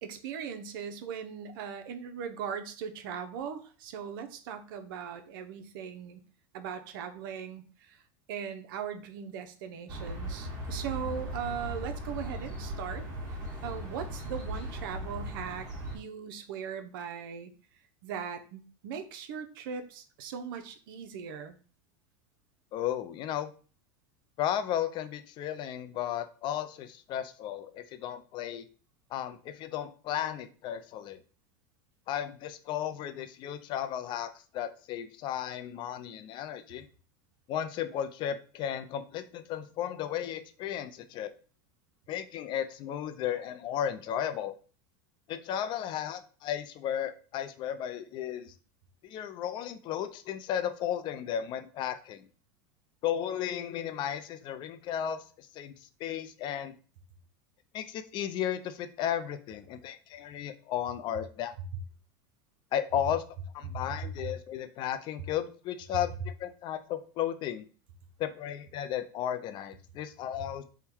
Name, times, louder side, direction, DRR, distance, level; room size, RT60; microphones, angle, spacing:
voice 1, 0.0-6.2 6.5-8.0 8.3-13.0 13.6-15.7 15.9-17.5 18.0-21.6, right 7 dB, 75° right, 8 dB, 0.6 m, -39 dB
sound 1, 9.9-16.0, right 1 dB, 30° right, 1.5 m, -38 dB
voice 2, 22.7-23.5 24.4-28.7 29.1-31.2 32.1-36.9 37.5-41.3 42.1-44.6 45.3-48.5 49.0-52.3 53.0-56.7 57.7-61.5 62.7-63.2 63.5-67.6 68.2-70.6, left 10 dB, 40° left, 10 dB, 0.5 m, -34 dB
3.6 x 2.2 x 4.4 m, 0.39 s
supercardioid pair, 125°, 12 cm